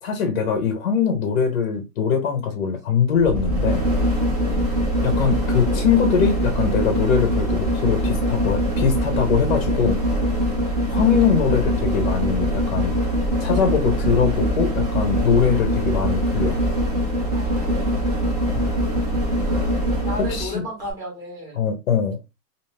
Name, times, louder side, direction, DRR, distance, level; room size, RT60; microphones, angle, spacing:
voice 1, 0.0-3.9 5.0-10.0 10.9-13.0 13.4-16.6 18.5-18.6 20.3-20.6 21.6-22.2, left 6 dB, 40° left, 0.6 m, -22 dB
sound 1, 3.1-20.5 20.9-21.0, equal, 25° right, 0.4 m, -22 dB
voice 2, 4.4-4.7 17.3-18.2 19.3-19.7 20.0-21.6, equal, 5° right, 0.8 m, -35 dB
2.4 x 2.3 x 3.2 m
hypercardioid pair, 140°, 50 cm